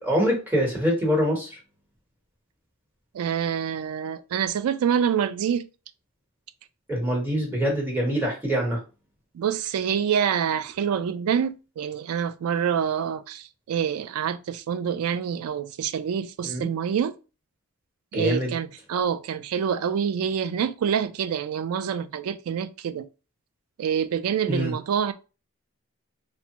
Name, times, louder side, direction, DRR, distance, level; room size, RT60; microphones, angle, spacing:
voice 1, 0.0-1.6 6.9-8.8 16.4-16.7 18.1-18.5 24.5-24.7, equal, 10° right, 1.0 m, -24 dB
voice 2, 3.1-5.7 9.3-17.2 18.1-23.1 23.8-25.1, right 8 dB, 85° right, 0.3 m, -26 dB
3.3 x 2.0 x 2.8 m
head